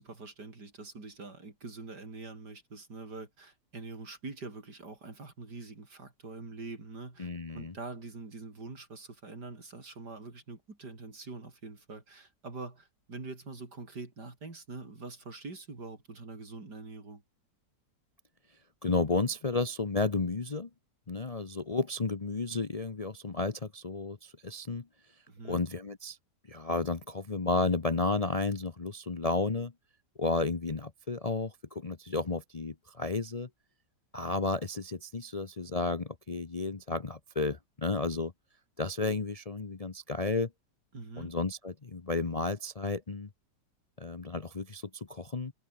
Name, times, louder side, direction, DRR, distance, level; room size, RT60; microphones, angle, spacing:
voice 1, 0.0-7.3 7.5-17.2 25.3-25.6 40.9-41.3, right 3 dB, 70° right, 5.0 m, -44 dB
voice 2, 7.2-7.7 18.8-20.7 21.1-24.9 25.4-26.2 26.5-29.7 30.2-33.5 34.1-38.3 38.8-40.5 41.2-43.3 44.0-45.5, left 3 dB, 30° left, 0.7 m, -32 dB
omnidirectional pair, 1.9 m